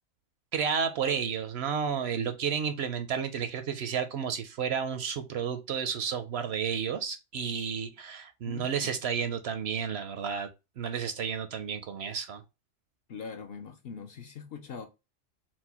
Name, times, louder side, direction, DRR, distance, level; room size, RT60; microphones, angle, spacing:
voice 1, 0.5-10.5 10.8-12.4, right 7 dB, 65° right, 0.7 m, -31 dB
voice 2, 8.4-9.1 13.1-14.9, left 6 dB, 60° left, 0.7 m, -42 dB
4.4 x 2.1 x 4.1 m
omnidirectional pair, 1.3 m